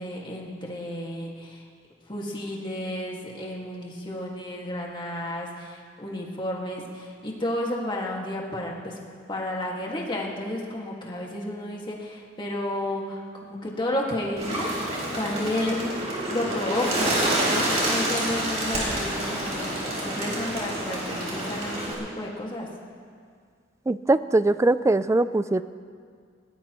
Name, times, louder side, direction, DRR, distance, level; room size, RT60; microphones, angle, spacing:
voice 1, 0.0-1.6 2.1-9.0 9.3-14.7 15.2-16.0 16.3-22.7, left 1 dB, 25° left, -2 dB, 2.0 m, -32 dB
Bird, 14.4-21.9, right 1 dB, 35° right, 4.1 m, -28 dB
voice 2, 23.9-25.6, right 2 dB, 15° right, 14 dB, 0.3 m, -21 dB
21.0 x 18.0 x 3.1 m, 2.1 s
head